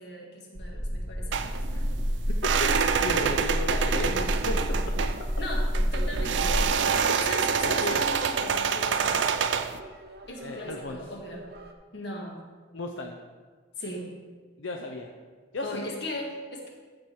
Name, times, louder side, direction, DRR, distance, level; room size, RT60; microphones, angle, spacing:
voice 1, 0.0-1.6 5.4-6.7 7.1-9.3 10.3-11.5 11.9-12.4 13.8-14.1 15.6-16.7, left 1 dB, 55° left, 0 dB, 1.7 m, -38 dB
sound 1, 0.5-6.6, equal, 20° left, 1.0 m, -29 dB
sound 2, 1.3-9.8, right 6 dB, 70° right, 0.4 m, -27 dB
voice 2, 2.3-4.8 7.6-8.0 10.4-11.0 12.7-13.2 14.6-15.1 15.5-15.9, left 2 dB, 80° left, 2 dB, 0.7 m, -35 dB
sound 3, 3.2-11.7, right 2 dB, 50° right, 0.8 m, -46 dB
14.0 x 4.8 x 4.6 m, 1.5 s
head